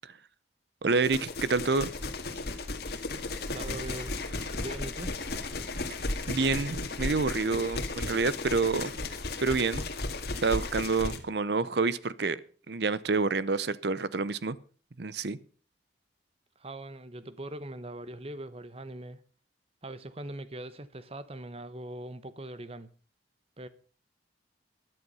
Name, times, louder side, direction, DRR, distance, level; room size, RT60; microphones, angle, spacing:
voice 1, 0.8-1.9 6.3-8.9 9.4-9.9 10.4-12.4 12.7-14.6 15.0-15.4, right 4 dB, 60° right, 0.7 m, -28 dB
sound 1, 1.0-11.2, left 2 dB, 55° left, 1.8 m, -35 dB
voice 2, 3.5-4.2 4.6-5.2 16.6-19.2 19.8-22.9 23.6-23.7, right 1 dB, 30° right, 0.9 m, -41 dB
14.0 x 11.0 x 5.5 m
head